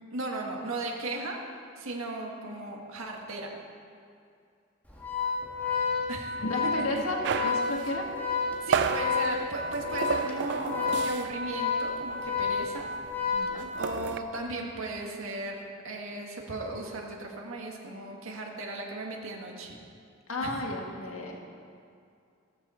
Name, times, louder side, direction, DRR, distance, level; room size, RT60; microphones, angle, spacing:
voice 1, 0.1-1.4 1.8-3.5 6.1-6.4 6.6-7.0 8.6-12.9 13.4-19.8 20.4-20.6, right 2 dB, 80° right, 0 dB, 1.7 m, -36 dB
Organ, 4.9-14.1, left 5 dB, 10° left, 1.8 m, -30 dB
voice 2, 6.4-8.1 13.3-13.7 20.3-21.5, left 2 dB, 80° left, 1 dB, 1.6 m, -33 dB
sound 1, 7.2-11.5 11.8-12.0 12.3-14.2, right 7 dB, 55° right, 0.4 m, -32 dB
14.5 x 13.0 x 4.3 m, 2.4 s
head